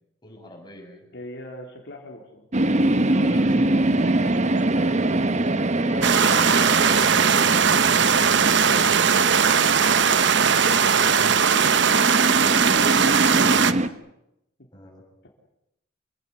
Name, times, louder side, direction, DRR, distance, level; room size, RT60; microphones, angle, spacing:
voice 1, 0.2-1.1 3.1-7.1 10.3-12.4 14.7-15.0, left 1 dB, 25° left, 0 dB, 7.4 m, -43 dB
voice 2, 1.1-2.5 8.5-9.8 13.5-14.0, left 1 dB, 60° left, 0 dB, 3.7 m, -41 dB
sound 1, 2.5-13.9, right 1 dB, 35° right, 1.0 m, -24 dB
sound 2, 6.0-13.7, right 7 dB, 65° right, 1.0 m, -19 dB
27.5 x 17.0 x 9.6 m, 0.83 s
head